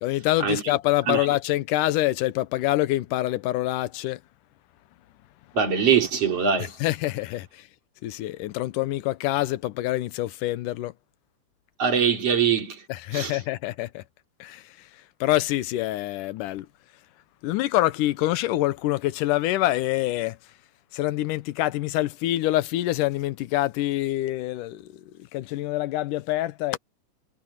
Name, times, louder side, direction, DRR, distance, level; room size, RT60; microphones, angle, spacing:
voice 1, 0.0-4.2 6.8-7.7 8.0-10.9 12.9-14.0 14.4-14.9 15.2-16.7 17.4-20.4 20.9-25.1 25.3-26.8, left 16 dB, 85° left, 2.4 m, -26 dB
voice 2, 5.5-6.7 11.8-12.8 13.1-13.3, right 7 dB, 50° right, 4.2 m, -22 dB
omnidirectional pair, 3.6 m